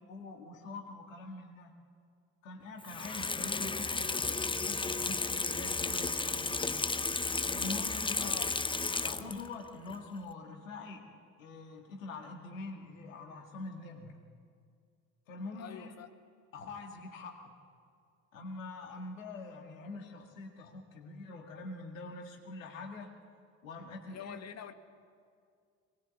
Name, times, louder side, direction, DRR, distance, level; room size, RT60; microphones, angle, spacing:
voice 1, 0.1-1.7 2.4-6.7 7.5-8.4 9.0-11.0 11.4-14.2 15.3-15.9 16.5-17.5 18.3-23.1 23.6-24.4, left 3 dB, 75° left, 3 dB, 2.2 m, -44 dB
Water tap faucet / Sink (filling or washing), 2.8-9.5 9.9-10.0, left 3 dB, 10° left, 0.9 m, -33 dB
voice 2, 8.1-8.6 15.5-16.1 24.1-24.7, left 8 dB, 40° left, 9 dB, 1.6 m, -46 dB
23.0 x 20.5 x 8.1 m, 2.2 s
figure-of-eight pair, 50°, 40 cm